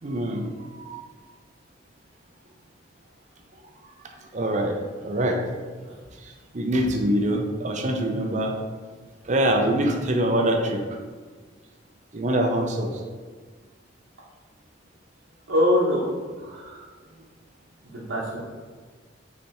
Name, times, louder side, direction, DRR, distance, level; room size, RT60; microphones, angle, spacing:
voice 1, 0.0-1.0 3.6-3.7 4.3-4.7 5.0-5.4 6.2-8.6 9.2-10.8 12.1-13.0, right 1 dB, 40° right, 3 dB, 0.5 m, -24 dB
voice 2, 15.5-16.1 16.4-16.8 17.8-18.4, left 1 dB, 90° right, -7 dB, 0.9 m, -23 dB
5.3 x 3.3 x 2.9 m, 1.5 s
head